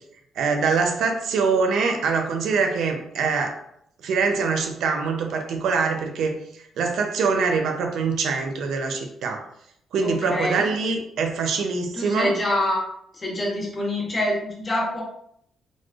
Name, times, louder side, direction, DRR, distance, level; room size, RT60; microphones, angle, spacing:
voice 1, 0.4-3.6 4.0-9.4 9.9-12.3, right 4 dB, 75° right, 3 dB, 0.6 m, -24 dB
voice 2, 10.0-10.7 11.9-12.8 13.1-15.0, left 1 dB, 30° left, -3 dB, 1.3 m, -25 dB
4.0 x 3.1 x 2.4 m, 0.72 s
cardioid pair, 100°, 0 cm